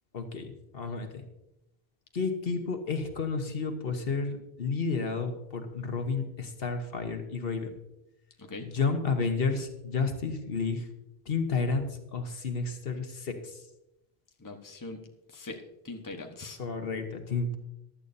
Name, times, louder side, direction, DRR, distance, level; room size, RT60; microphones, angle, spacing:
voice 1, 0.1-1.2 2.1-7.7 8.6-10.9 11.2-13.6 16.6-17.6, left 4 dB, 70° left, 6 dB, 1.3 m, -31 dB
voice 2, 8.4-8.7 14.4-15.0 15.3-16.6, left 2 dB, 20° left, 3 dB, 1.1 m, -41 dB
15.5 x 11.5 x 2.7 m, 0.88 s
omnidirectional pair, 1.0 m